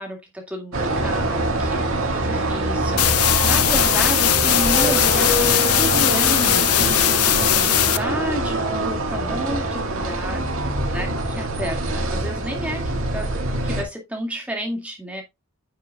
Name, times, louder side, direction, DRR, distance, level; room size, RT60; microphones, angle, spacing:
voice 1, 0.0-7.0 7.6-13.3 13.6-15.2, equal, 5° right, 2.1 m, -31 dB
sound 1, 0.7-13.8, right 2 dB, 70° right, 2.2 m, -24 dB
sound 2, 3.0-8.0, left 14 dB, 90° left, 0.5 m, -19 dB
9.2 x 7.4 x 2.3 m
head